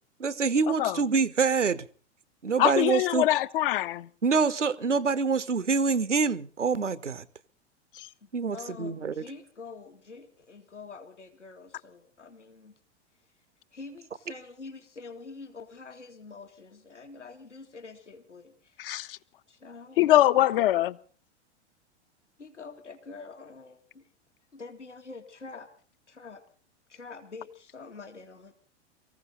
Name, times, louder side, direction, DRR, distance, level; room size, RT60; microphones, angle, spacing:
voice 1, 0.2-1.9 2.4-3.3 4.2-7.2 8.3-9.2, right 5 dB, 80° right, 1.1 m, -26 dB
voice 2, 2.6-4.1 8.0-8.1 18.8-19.2 20.0-21.0, left 14 dB, 50° left, 0.9 m, -23 dB
voice 3, 8.2-12.7 13.7-19.2 19.5-20.1 22.4-24.1 24.5-25.7 26.1-26.4 26.9-28.5, left 4 dB, 80° left, 2.3 m, -46 dB
24.0 x 15.5 x 3.9 m
figure-of-eight pair, 95°, 35 cm